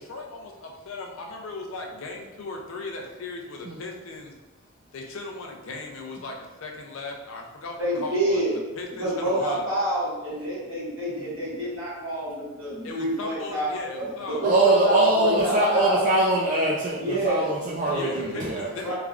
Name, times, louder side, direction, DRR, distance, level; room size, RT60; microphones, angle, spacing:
voice 1, 0.0-4.3 4.9-9.6 12.8-14.4 17.9-18.9, left 3 dB, 75° left, 2 dB, 0.4 m, -37 dB
voice 2, 7.8-8.5 9.0-13.7 14.0-16.1 17.0-17.5 18.8-18.9, right 1 dB, 70° right, -10 dB, 1.4 m, -27 dB
voice 3, 14.4-18.9, right 2 dB, 40° right, -6 dB, 0.3 m, -23 dB
3.2 x 2.3 x 2.4 m, 1.1 s
head